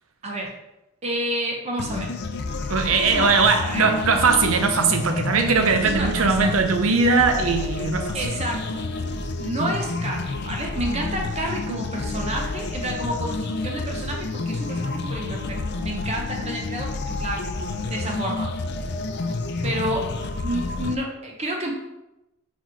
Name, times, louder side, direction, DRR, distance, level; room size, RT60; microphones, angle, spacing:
voice 1, 0.2-0.5 1.0-2.1 2.9-3.9 5.8-6.5 8.1-8.8 9.4-17.5 17.9-18.5 19.6-20.1 20.4-21.7, right 1 dB, 30° right, 0.8 m, -30 dB
sound 1, 1.8-20.9, left 3 dB, 55° left, 0.5 m, -29 dB
voice 2, 2.7-8.2, right 4 dB, 85° right, 0.8 m, -20 dB
4.6 x 4.6 x 4.6 m
head